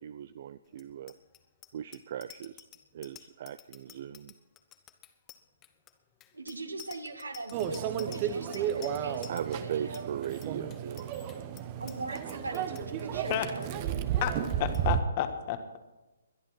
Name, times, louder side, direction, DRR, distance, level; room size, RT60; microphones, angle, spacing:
voice 1, 0.0-1.1 1.7-2.6 2.9-4.3 9.3-11.1, right 9 dB, 45° right, 15 dB, 0.5 m, -38 dB
Bicycle bell, 0.7-13.0 13.4-13.7 13.9-14.2 14.5-14.8, left 11 dB, 20° left, 1.0 m, -52 dB
voice 2, 6.3-10.1 11.8-14.0, right 2 dB, 75° right, 7 dB, 2.0 m, -40 dB
Microwave oven, 7.5-15.0, right 9 dB, 30° right, 1.0 m, -33 dB
voice 3, 14.6-15.8, left 11 dB, 35° left, 8 dB, 1.6 m, -31 dB
21.5 x 11.5 x 4.4 m, 1.1 s
figure-of-eight pair, 130°, 0 cm